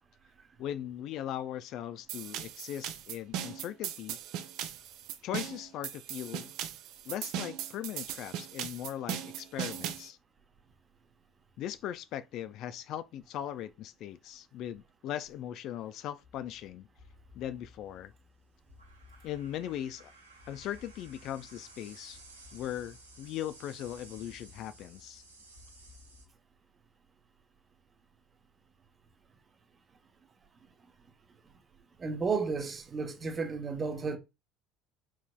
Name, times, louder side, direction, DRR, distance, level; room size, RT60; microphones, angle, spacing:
voice 1, 0.6-4.2 5.2-6.5 7.1-10.2 11.6-16.9 17.3-18.1 19.2-20.1 20.5-22.2 22.5-25.2, left 11 dB, 50° left, 0.3 m, -39 dB
sound 1, 2.1-10.1, right 10 dB, 55° right, 0.6 m, -38 dB
sound 2, 16.2-26.3, equal, 90° right, 1.0 m, -55 dB
voice 2, 32.0-34.2, right 4 dB, 30° right, 0.9 m, -32 dB
4.8 x 3.9 x 2.2 m
figure-of-eight pair, 65°, 0 cm